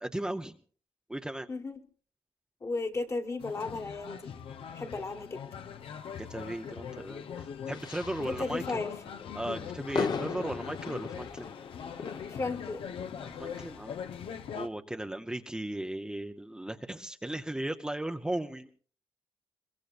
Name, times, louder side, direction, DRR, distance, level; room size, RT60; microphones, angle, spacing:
voice 1, 0.0-0.5 1.1-1.5 6.2-8.6 9.3-11.5 13.4-14.0 14.5-18.8, right 1 dB, 10° right, 6 dB, 0.7 m, -36 dB
voice 2, 2.6-4.3 4.7-5.4 8.2-8.9 12.3-12.8, left 3 dB, 30° left, 6 dB, 1.5 m, -34 dB
sound 1, 3.4-14.7, left 7 dB, 85° left, 0.9 m, -42 dB
sound 2, 7.7-8.5 9.1-13.8, left 5 dB, 50° left, 1.1 m, -39 dB
22.0 x 21.5 x 2.5 m, 0.43 s
wide cardioid pair, 140°, 9 cm